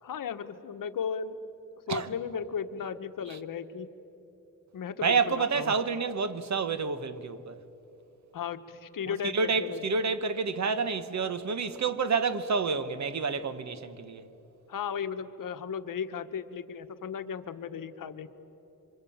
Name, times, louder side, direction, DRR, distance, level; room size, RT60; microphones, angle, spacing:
voice 1, 0.0-1.3 1.9-3.9 4.7-5.8 8.3-9.8 14.7-18.3, left 7 dB, 70° left, 1.3 m, -35 dB
voice 2, 5.0-7.6 9.1-14.2, right 5 dB, 55° right, 1.3 m, -29 dB
27.0 x 25.5 x 8.7 m
wide cardioid pair, 155°, 34 cm